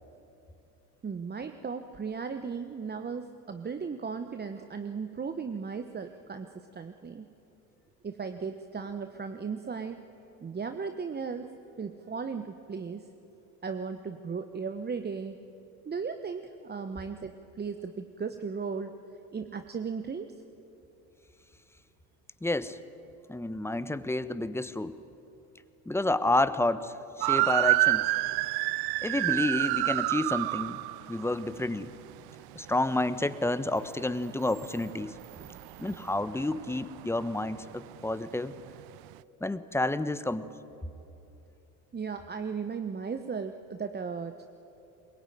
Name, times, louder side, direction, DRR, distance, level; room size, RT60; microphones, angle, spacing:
voice 1, 1.0-7.3 8.0-10.0 10.4-13.1 13.6-15.4 15.8-19.0 19.3-20.3 35.4-35.6 41.9-44.4, right 5 dB, 20° right, 8 dB, 1.1 m, -36 dB
voice 2, 22.4-22.8 23.3-25.0 25.9-28.1 29.0-30.8 31.1-31.9 32.5-35.2 35.8-38.5 39.4-40.5, left 2 dB, 5° left, 13 dB, 1.1 m, -30 dB
sound 1, 27.2-34.0 34.3-38.2 38.5-38.8 39.1-39.2, right 19 dB, 55° right, 0.7 m, -29 dB
22.0 x 22.0 x 9.3 m, 2.8 s
hypercardioid pair, 70°, 46 cm